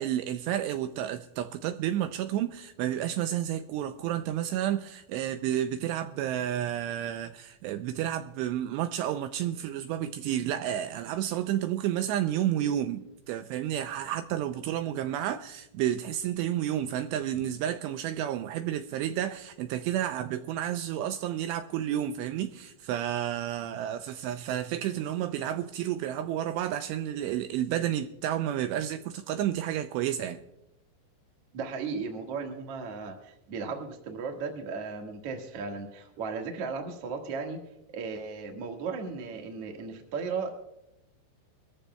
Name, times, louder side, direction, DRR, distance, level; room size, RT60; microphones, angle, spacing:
voice 1, 0.0-30.4, right 11 dB, 80° right, 2.6 m, -31 dB
voice 2, 31.5-37.6 37.9-40.6, right 5 dB, 55° right, 1.7 m, -36 dB
24.0 x 14.0 x 2.2 m
omnidirectional pair, 5.2 m